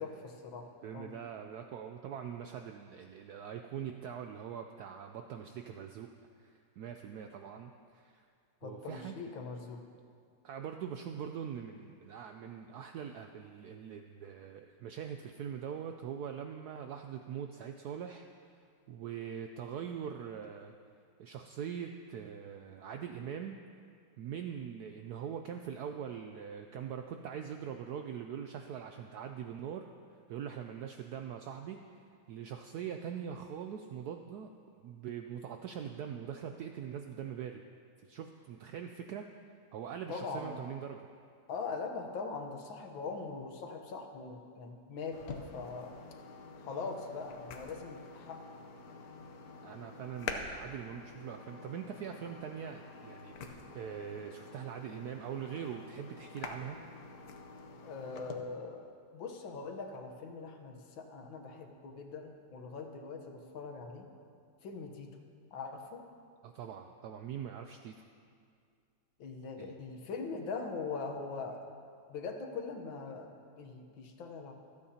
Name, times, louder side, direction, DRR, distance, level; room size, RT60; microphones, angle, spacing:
voice 1, 0.0-1.1 8.6-9.8 40.1-40.6 41.5-45.2 45.5-45.9 46.6-48.4 57.8-64.1 64.6-65.2 65.5-66.0 69.2-71.6 72.1-74.5, left 4 dB, 80° left, 4 dB, 1.8 m, -42 dB
voice 2, 0.8-6.1 6.4-8.3 8.6-9.1 10.4-18.6 18.9-20.7 21.2-23.6 24.2-29.9 30.1-31.8 32.3-34.5 34.8-37.6 38.0-39.3 39.7-41.1 49.6-56.8 66.4-68.0 69.6-69.7, right 8 dB, 75° right, 5 dB, 0.9 m, -42 dB
sound 1, 45.1-58.4, left 4 dB, 60° left, 1.2 m, -47 dB
25.5 x 8.6 x 2.8 m, 2.3 s
omnidirectional pair, 2.1 m